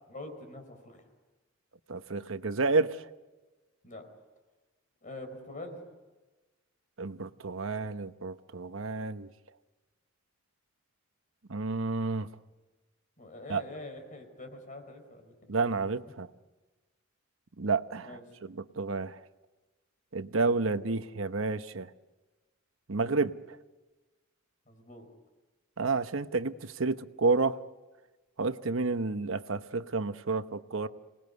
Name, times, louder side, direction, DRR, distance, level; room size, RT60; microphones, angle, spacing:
voice 1, 0.1-1.0 3.8-4.1 5.0-5.8 13.2-15.8 18.0-18.2 24.7-25.1, left 2 dB, 40° left, 4.5 m, -45 dB
voice 2, 1.9-3.0 7.0-9.3 11.5-12.3 13.5-13.6 15.5-16.3 17.6-19.2 20.1-21.9 22.9-23.6 25.8-27.6 28.4-30.9, right 3 dB, 70° right, 1.0 m, -30 dB
27.0 x 20.0 x 9.6 m
head